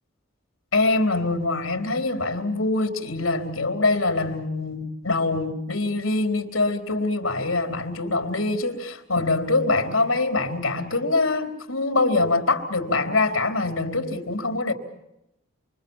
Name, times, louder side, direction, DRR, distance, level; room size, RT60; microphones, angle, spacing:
voice 1, 0.7-14.7, left 3 dB, 80° left, 3.9 m, -24 dB
29.0 x 23.0 x 7.3 m
head